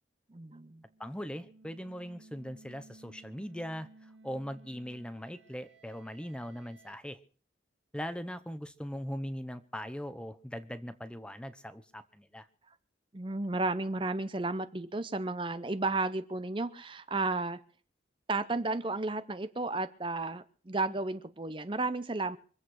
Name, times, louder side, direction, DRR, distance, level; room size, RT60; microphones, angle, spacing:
voice 1, 0.3-0.8 13.1-17.6 18.3-22.4, right 3 dB, 25° right, 12 dB, 0.6 m, -33 dB
sound 1, 0.7-7.0, right 2 dB, 90° right, 2.1 m, -58 dB
voice 2, 1.0-7.2 7.9-12.5, equal, 5° left, 12 dB, 0.8 m, -40 dB
24.5 x 8.3 x 6.3 m, 0.43 s
head